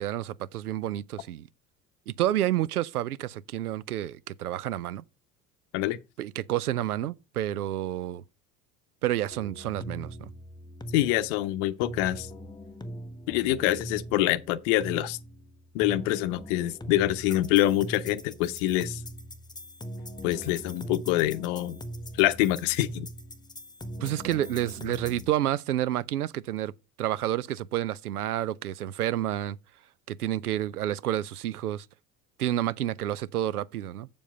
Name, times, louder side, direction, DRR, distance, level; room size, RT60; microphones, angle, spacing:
voice 1, 0.0-1.5 2.1-5.0 6.2-8.2 9.0-10.3 24.0-26.7 27.0-29.6 30.1-31.9 32.4-34.1, right 12 dB, 80° right, 0.6 m, -29 dB
sound 1, 9.3-25.3, equal, 10° left, 0.7 m, -41 dB
voice 2, 10.9-12.3 13.3-15.2 15.7-19.0 20.2-21.8 22.2-23.1, left 15 dB, 55° left, 0.8 m, -25 dB
7.3 x 7.1 x 5.2 m
figure-of-eight pair, 65°, 44 cm